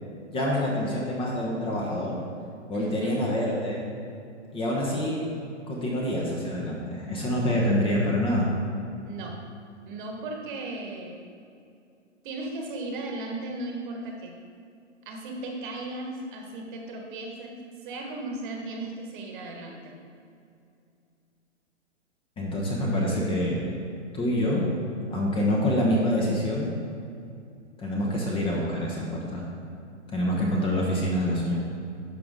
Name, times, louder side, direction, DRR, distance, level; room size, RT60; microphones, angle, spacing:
voice 1, 0.3-2.2 2.7-3.8 4.5-5.2 5.7-8.5 22.4-23.7 24.1-24.6 25.1-26.7 27.8-29.4 30.1-31.6, left 1 dB, 15° left, -2 dB, 1.0 m, -26 dB
voice 2, 2.7-3.2 9.0-9.4 9.8-11.2 12.2-14.4 15.0-19.9, right 2 dB, 45° right, 1 dB, 1.5 m, -36 dB
11.0 x 5.8 x 3.7 m, 2.5 s
hypercardioid pair, 125°, 36 cm